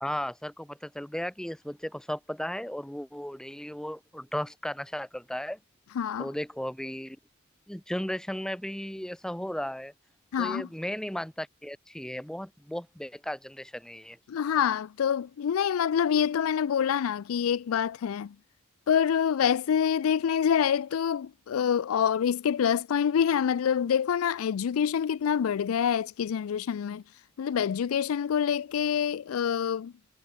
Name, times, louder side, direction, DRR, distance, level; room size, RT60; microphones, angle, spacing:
voice 1, 0.0-5.6 6.2-7.2 7.7-9.9 10.4-14.2, equal, 5° left, 0.6 m, -35 dB
voice 2, 6.0-6.3 10.3-10.7 14.3-18.3 18.9-27.0 27.4-29.9, left 8 dB, 85° left, 0.4 m, -26 dB
head